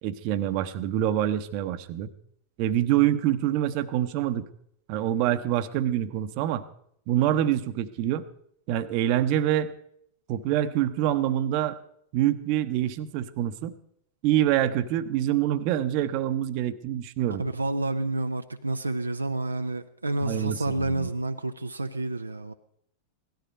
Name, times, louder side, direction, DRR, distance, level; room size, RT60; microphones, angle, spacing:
voice 1, 0.0-2.1 2.6-4.4 4.9-6.6 7.1-8.2 8.7-9.7 10.3-11.8 12.1-13.7 14.2-17.4 20.2-21.1, right 12 dB, 45° right, 12 dB, 0.9 m, -26 dB
voice 2, 17.4-22.5, right 2 dB, 80° right, 7 dB, 0.6 m, -29 dB
17.0 x 13.0 x 5.3 m, 0.69 s
figure-of-eight pair, 90°, 0 cm